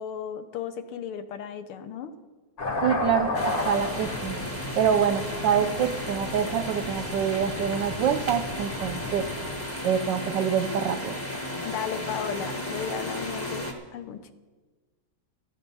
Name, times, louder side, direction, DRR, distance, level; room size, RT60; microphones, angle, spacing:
voice 1, 0.0-2.1 11.5-13.7 13.9-14.3, left 8 dB, 80° left, 10 dB, 1.8 m, -35 dB
sound 1, 2.6-9.5, left 2 dB, 55° left, 3.5 m, -33 dB
voice 2, 2.8-4.4 4.8-9.2 9.8-11.1, right 8 dB, 70° right, 8 dB, 1.2 m, -26 dB
sound 2, 3.3-13.7, left 1 dB, 10° left, 1.1 m, -34 dB
14.5 x 13.0 x 5.6 m, 1.4 s
omnidirectional pair, 2.4 m